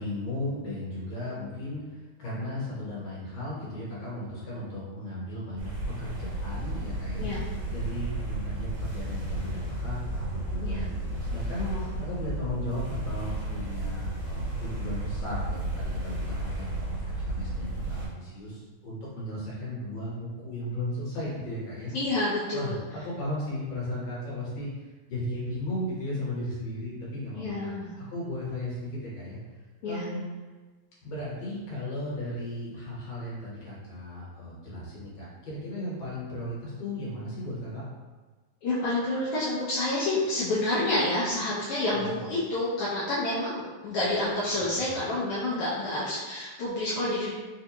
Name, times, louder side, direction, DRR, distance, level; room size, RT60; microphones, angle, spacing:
voice 1, 0.0-5.7 6.0-7.3 7.7-21.9 22.5-24.7 25.1-27.7 28.0-29.4 29.8-30.2 31.0-37.8 41.9-42.2 44.8-45.0, left 1 dB, 65° left, -7 dB, 2.0 m, -36 dB
sound 1, 5.6-18.1, right 1 dB, 60° right, 1.5 m, -33 dB
voice 2, 11.6-11.9 21.9-22.8 27.3-27.9 29.8-30.0 38.6-47.3, left 2 dB, 80° left, -8 dB, 1.2 m, -29 dB
4.6 x 2.2 x 2.8 m, 1.3 s
omnidirectional pair, 3.3 m